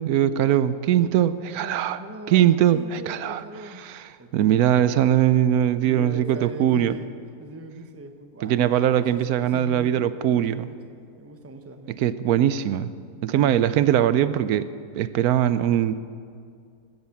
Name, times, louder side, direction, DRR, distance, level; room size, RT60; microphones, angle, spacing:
voice 1, 0.0-2.0 2.3-2.8 3.1-3.4 4.3-6.9 8.4-10.7 12.0-12.9 13.2-14.6 15.0-15.9, right 11 dB, 80° right, 14 dB, 1.1 m, -21 dB
voice 2, 1.6-3.8 4.2-5.1 5.8-7.1 7.4-12.0 13.3-13.5, right 2 dB, 15° right, 6 dB, 0.7 m, -41 dB
16.5 x 12.5 x 7.0 m, 2.2 s
omnidirectional pair, 1.6 m